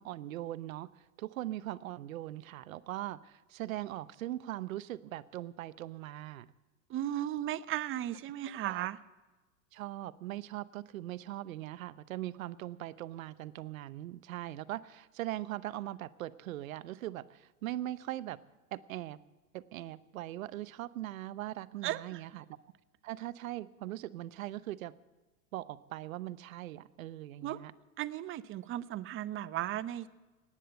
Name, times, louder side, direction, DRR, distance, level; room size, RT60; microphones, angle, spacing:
voice 1, 0.0-6.5 8.6-8.9 9.7-18.4 18.7-19.2 19.5-22.6 23.0-24.9 25.5-27.7, right 14 dB, 75° right, 16 dB, 0.8 m, -40 dB
voice 2, 6.9-9.0 21.8-22.2 27.4-27.6 28.0-30.1, right 13 dB, 30° right, 15 dB, 0.7 m, -36 dB
17.5 x 10.0 x 7.7 m, 1.2 s
hypercardioid pair, 110°, 41 cm